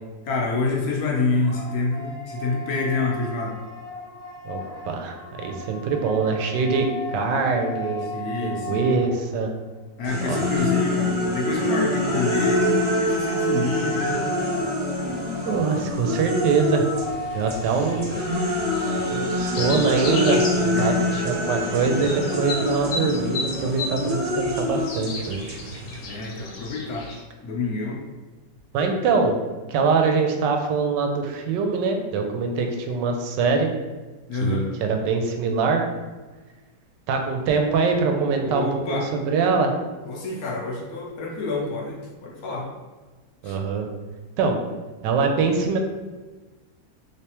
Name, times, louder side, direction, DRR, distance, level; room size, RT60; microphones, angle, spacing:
voice 1, 0.2-3.5 8.1-9.0 10.0-14.2 20.7-21.0 26.0-27.1 27.4-28.0 34.3-34.7 38.4-39.1 40.0-42.7 43.4-43.6, left 3 dB, 65° left, -2 dB, 1.0 m, -27 dB
sound 1, 0.9-9.6 12.0-19.7, left 2 dB, 30° left, 0.8 m, -37 dB
voice 2, 4.4-8.1 8.4-9.5 10.3-10.4 15.5-16.9 17.3-18.0 19.1-25.6 28.7-29.4 29.7-33.7 34.4-35.8 37.1-39.7 43.4-43.9 44.4-44.6 45.0-45.8, right 4 dB, 90° right, 4 dB, 1.2 m, -23 dB
sound 2, 10.0-17.1 17.5-26.0, left 1 dB, 50° right, 0.8 m, -25 dB
sound 3, 16.9-27.2, left 3 dB, 90° left, 1.4 m, -35 dB
3.3 x 3.1 x 2.9 m, 1.3 s
omnidirectional pair, 1.9 m